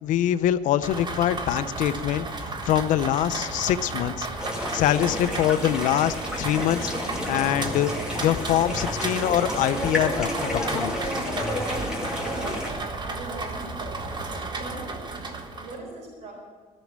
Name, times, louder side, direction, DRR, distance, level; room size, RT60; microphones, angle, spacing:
voice 1, 0.0-4.3 4.7-6.9 7.3-7.9 8.2-10.9, left 11 dB, 80° left, 14 dB, 0.5 m, -24 dB
Rain, 0.8-15.8, right 3 dB, 35° right, 1.3 m, -33 dB
sound 1, 4.4-12.7, left 1 dB, 5° right, 2.5 m, -31 dB
voice 2, 12.2-16.3, right 3 dB, 65° right, -2 dB, 4.5 m, -40 dB
14.0 x 6.3 x 8.6 m, 1.5 s
cardioid pair, 110°, 13 cm